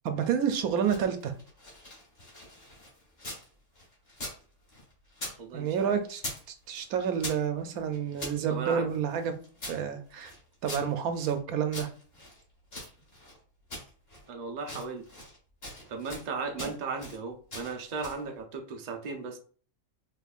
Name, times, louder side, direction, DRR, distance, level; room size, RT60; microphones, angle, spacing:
voice 1, 0.0-1.3 5.5-6.2 6.7-9.3 9.7-10.3 10.6-11.9 16.6-16.7, right 7 dB, 75° right, 8 dB, 1.0 m, -29 dB
sound 1, 0.6-3.5 3.8-5.4 5.6-6.5 6.8-8.4 8.9-11.4 11.7-13.4 13.7-14.3 14.6-15.4 15.6-16.3 16.6-17.2 17.5-18.3, left 1 dB, 40° left, 2.0 m, -43 dB
voice 2, 5.4-6.0 8.5-8.9 14.3-15.0 15.9-19.4, right 4 dB, 50° right, 4 dB, 0.5 m, -36 dB
5.1 x 3.0 x 2.4 m, 0.42 s
omnidirectional pair, 1.6 m